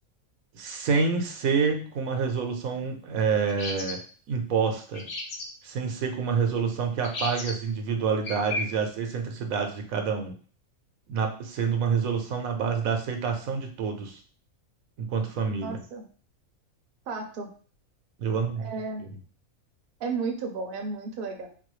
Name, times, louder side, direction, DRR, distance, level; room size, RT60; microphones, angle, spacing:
voice 1, 0.5-4.0 4.3-5.1 5.6-10.3 11.1-14.2 15.0-15.8 18.2-18.7 19.0-19.1, right 5 dB, 85° right, 4 dB, 1.1 m, -27 dB
sound 1, 3.5-4.0 4.9-5.5 7.0-7.5 8.2-8.6, left 2 dB, 55° left, 0.7 m, -33 dB
voice 2, 15.6-16.1 17.1-17.5 18.6-19.0 20.0-21.5, right 4 dB, 55° right, 3 dB, 0.7 m, -33 dB
3.9 x 2.3 x 3.1 m, 0.41 s
omnidirectional pair, 1.4 m